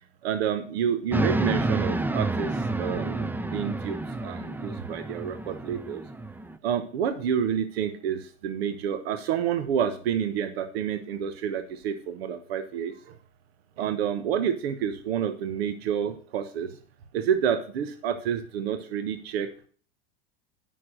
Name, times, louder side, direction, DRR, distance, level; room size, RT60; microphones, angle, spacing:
voice 1, 0.2-6.0 6.6-12.9 13.8-16.7 17.1-19.7, right 8 dB, 70° right, 10 dB, 1.1 m, -29 dB
sound 1, 1.1-6.6, right 2 dB, 5° right, 0.5 m, -29 dB
9.7 x 6.1 x 6.3 m, 0.42 s
hypercardioid pair, 95°, 32 cm